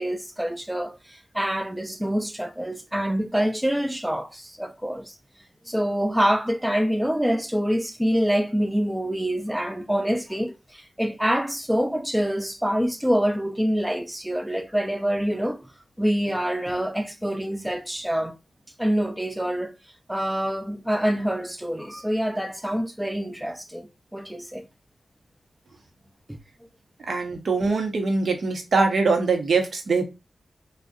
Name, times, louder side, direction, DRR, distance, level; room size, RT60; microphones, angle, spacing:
voice 1, 0.0-5.1 5.7-15.6 16.0-18.3 18.8-19.7 20.1-24.7 26.3-26.4, equal, 5° right, 0.3 m, -26 dB
voice 2, 27.1-30.0, right 4 dB, 65° right, 0.6 m, -22 dB
2.6 x 2.0 x 2.3 m
wide cardioid pair, 105°, 0 cm